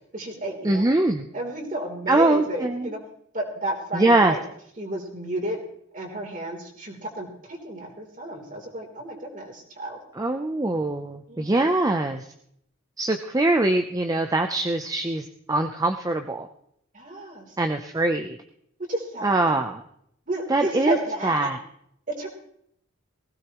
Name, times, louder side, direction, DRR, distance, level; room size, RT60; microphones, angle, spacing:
voice 1, 0.1-0.8 1.3-3.0 3.3-4.4 4.8-5.6 5.9-10.0 11.3-11.7 16.9-17.5 18.9-19.6 20.3-21.5 22.2-22.3, right 1 dB, 40° right, 0 dB, 3.5 m, -31 dB
voice 2, 0.6-1.3 2.1-2.9 3.9-4.4 10.1-12.3 13.0-16.5 17.6-18.4 19.2-19.8 20.5-21.0 21.2-21.6, right 2 dB, 15° right, 6 dB, 0.6 m, -23 dB
19.0 x 16.5 x 3.0 m, 0.70 s
head